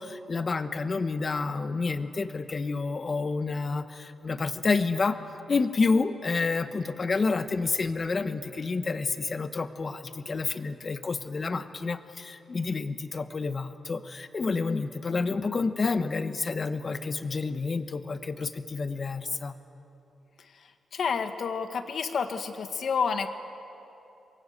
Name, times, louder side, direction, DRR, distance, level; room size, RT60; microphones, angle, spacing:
voice 1, 0.0-5.2 5.5-19.5, left 4 dB, 35° left, 10 dB, 1.2 m, -29 dB
voice 2, 20.9-23.3, left 6 dB, 60° left, 7 dB, 1.8 m, -29 dB
28.0 x 23.0 x 8.2 m, 2.9 s
cardioid pair, 115°, 0 cm